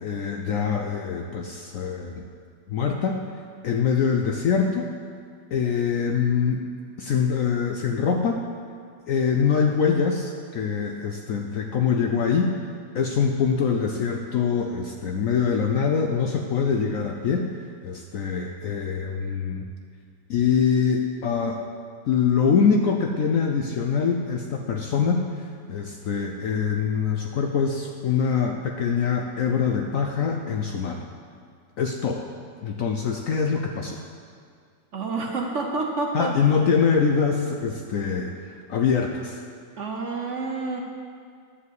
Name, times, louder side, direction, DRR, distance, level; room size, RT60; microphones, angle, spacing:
voice 1, 0.0-2.3 2.7-3.2 3.6-4.9 5.5-6.6 7.0-8.4 9.1-12.6 12.9-17.5 17.8-19.7 20.3-21.6 22.1-31.0 31.8-32.3 32.6-34.0 36.1-39.4, left 6 dB, 70° left, 3 dB, 0.8 m, -24 dB
voice 2, 34.9-36.3 39.8-40.8, right 3 dB, 55° right, 1 dB, 0.9 m, -28 dB
11.0 x 4.9 x 8.0 m, 2.2 s
omnidirectional pair, 1.9 m